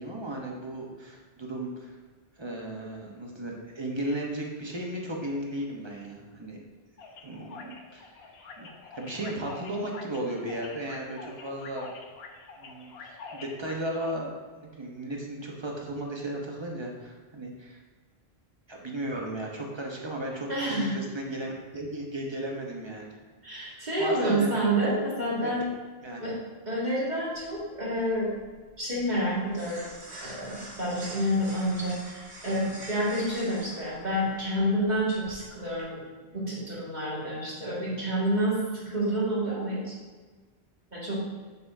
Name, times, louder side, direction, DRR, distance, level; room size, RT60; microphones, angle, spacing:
voice 1, 0.0-2.0 2.4-6.6 7.2-8.2 8.6-8.7 8.9-11.9 12.6-14.3 14.6-17.8 18.7-23.2 23.7-24.6 25.4-25.5 26.0-26.2, right 1 dB, 25° right, -1 dB, 1.0 m, -35 dB
sound 1, 7.0-14.1, left 4 dB, 75° left, 0.9 m, -46 dB
voice 2, 20.5-20.9 23.4-25.6 26.2-26.4 26.7-28.3 28.8-29.9 30.2-36.0 36.3-40.0 40.9-41.2, right 1 dB, 45° right, -7 dB, 2.2 m, -28 dB
sound 2, 27.3-35.8, right 1 dB, 85° right, 1.8 m, -47 dB
6.9 x 6.7 x 2.7 m, 1.4 s
omnidirectional pair, 1.1 m